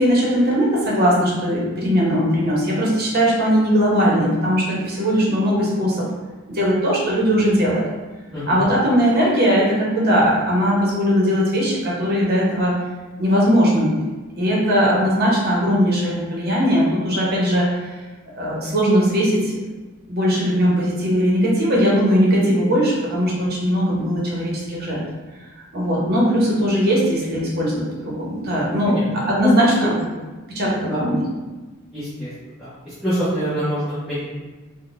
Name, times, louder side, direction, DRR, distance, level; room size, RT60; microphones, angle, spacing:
voice 1, 0.0-6.1 6.5-7.9 8.5-12.7 13.2-14.0 14.4-17.8 18.4-19.6 20.1-25.0 25.7-29.9 30.5-31.2, equal, 45° right, -4 dB, 0.8 m, -19 dB
voice 2, 31.9-32.3 32.6-34.2, equal, ahead, -15 dB, 0.7 m, -24 dB
3.6 x 2.1 x 2.5 m, 1.2 s
head